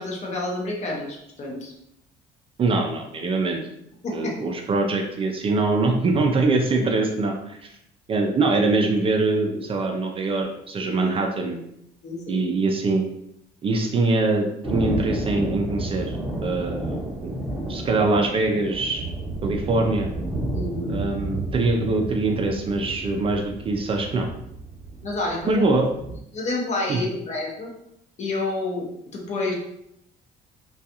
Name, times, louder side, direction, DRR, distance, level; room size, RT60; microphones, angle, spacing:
voice 1, 0.0-1.7 4.0-4.4 12.0-12.4 20.5-21.1 25.0-25.7 26.3-27.7 28.2-28.9 29.1-29.5, left 2 dB, 45° left, 0 dB, 0.7 m, -29 dB
voice 2, 2.6-3.6 4.1-7.7 8.1-11.6 12.3-13.0 13.6-16.2 16.4-17.3 17.7-19.1 19.4-20.1 20.9-24.3 25.5-25.9 26.9-27.0, right 3 dB, 35° right, 2 dB, 0.4 m, -23 dB
Thunder, 14.6-26.2, right 2 dB, 5° right, 0.8 m, -32 dB
2.4 x 2.3 x 2.7 m, 0.78 s
cardioid pair, 110°, 17 cm